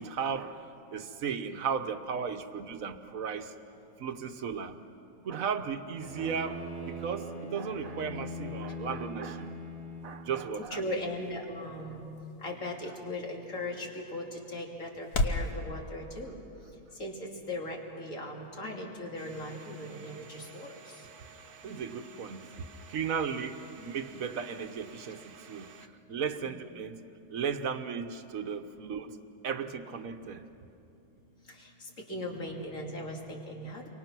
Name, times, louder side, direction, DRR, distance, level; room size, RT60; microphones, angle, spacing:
voice 1, 0.0-3.5 4.0-4.8 5.2-9.5 10.0-10.8 21.6-22.5 22.9-25.7 26.1-27.0 27.3-29.2 29.4-30.4, right 6 dB, 65° right, 9 dB, 1.4 m, -35 dB
Bowed string instrument, 6.0-10.4, left 1 dB, 40° left, 2.4 m, -41 dB
sound 1, 9.2-15.5, left 2 dB, 85° left, 1.8 m, -38 dB
voice 2, 10.6-12.0 12.4-16.3 17.0-21.0 26.4-26.7 31.5-33.9, left 1 dB, 60° left, 0 dB, 3.2 m, -38 dB
Domestic sounds home sounds, 19.2-25.9, right 6 dB, 85° right, 1.5 m, -53 dB
29.0 x 24.0 x 6.1 m, 2.8 s
omnidirectional pair, 1.6 m